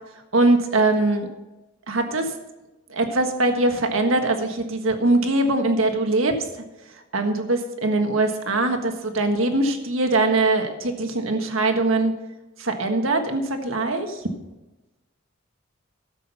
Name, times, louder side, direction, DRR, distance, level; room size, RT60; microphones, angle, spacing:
voice 1, 0.3-1.3 1.9-2.3 2.9-6.6 7.1-12.1 12.6-14.2, right 2 dB, 80° right, 5 dB, 1.6 m, -22 dB
13.0 x 7.6 x 5.7 m, 1.1 s
head